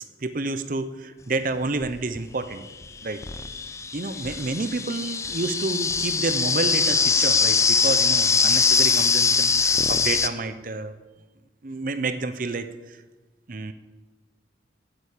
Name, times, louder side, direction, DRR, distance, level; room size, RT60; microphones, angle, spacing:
voice 1, 0.2-2.7 3.0-3.2 3.9-11.0 11.6-13.0 13.5-13.7, right 3 dB, 50° right, 11 dB, 0.7 m, -29 dB
sound 1, 1.8-1.9 2.8-10.3, left 5 dB, 15° left, 0.4 m, -22 dB
10.5 x 8.2 x 8.7 m, 1.2 s
head